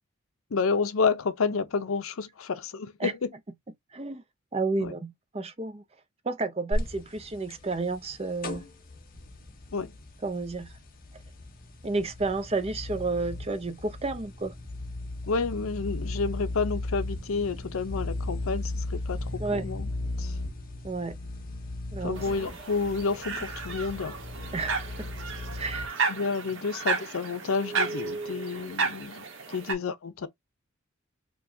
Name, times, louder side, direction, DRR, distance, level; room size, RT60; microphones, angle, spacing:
voice 1, 0.5-3.2 4.8-4.9 9.7-9.9 15.3-19.9 20.2-20.4 22.0-24.2 26.1-30.3, left 4 dB, 80° left, 0.6 m, -30 dB
voice 2, 3.9-4.2 4.5-5.8 6.2-8.7 9.7-9.8 10.2-10.8 11.8-14.5 19.4-19.8 20.8-21.2 21.9-22.4 24.5-25.1 25.5-26.0, right 3 dB, 30° right, 0.6 m, -31 dB
sound 1, 6.7-25.9, left 1 dB, 45° left, 0.9 m, -36 dB
sound 2, 22.1-29.7, right 4 dB, 60° right, 1.0 m, -33 dB
4.7 x 2.3 x 2.7 m
head